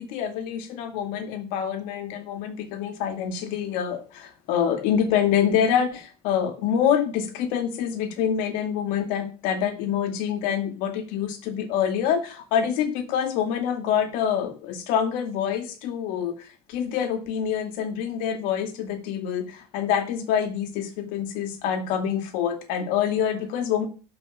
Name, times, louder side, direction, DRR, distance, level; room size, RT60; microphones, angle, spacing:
voice 1, 0.0-23.9, left 8 dB, 70° left, 2.4 m, -26 dB
12.0 x 5.4 x 7.1 m
cardioid pair, 165°, 15 cm